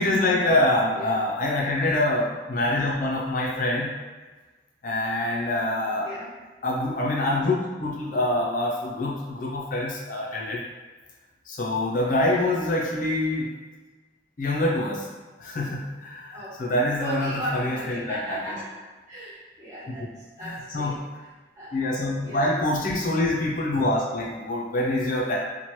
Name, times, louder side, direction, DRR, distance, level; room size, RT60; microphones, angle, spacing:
voice 1, 0.0-3.9 4.8-6.1 6.6-10.6 11.5-13.5 14.4-15.1 15.4-18.6 20.4-21.0 21.7-25.4, left 1 dB, 50° left, -2 dB, 0.5 m, -25 dB
voice 2, 0.9-1.2 5.8-6.6 12.2-12.6 16.3-16.7 17.0-21.1 21.5-21.8 22.2-22.6, right 1 dB, 15° right, -13 dB, 1.4 m, -37 dB
2.9 x 2.2 x 3.0 m, 1.3 s
head